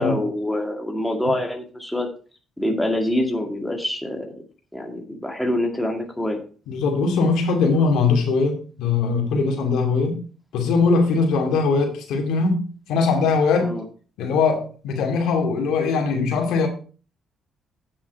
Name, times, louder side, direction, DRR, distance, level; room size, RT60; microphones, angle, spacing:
voice 1, 0.0-2.1 2.6-4.3 4.7-6.4 13.6-13.8, left 1 dB, 5° left, 2 dB, 2.1 m, -25 dB
voice 2, 6.7-10.2 10.5-13.7 14.2-16.7, left 4 dB, 85° left, 3 dB, 2.5 m, -21 dB
8.9 x 7.4 x 4.7 m, 0.38 s
cardioid pair, 90°, 0 cm